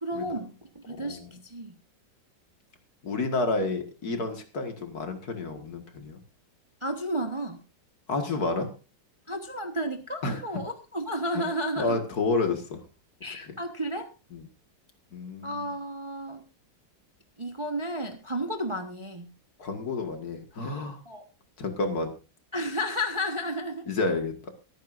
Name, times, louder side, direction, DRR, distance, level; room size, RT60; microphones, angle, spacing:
voice 1, 0.0-1.7 6.8-7.6 9.3-12.0 13.2-14.1 15.4-16.4 17.4-19.3 21.1-21.2 22.5-23.9, equal, 20° right, 5 dB, 1.0 m, -32 dB
voice 2, 0.9-1.3 3.0-6.2 8.1-8.7 10.2-10.4 11.3-11.4 11.8-12.8 13.5-13.6 14.3-14.4 15.1-15.6 19.6-21.0 21.6-22.1 23.9-24.5, left 3 dB, 55° left, 6 dB, 2.2 m, -30 dB
23.5 x 9.4 x 2.6 m, 0.31 s
omnidirectional pair, 2.0 m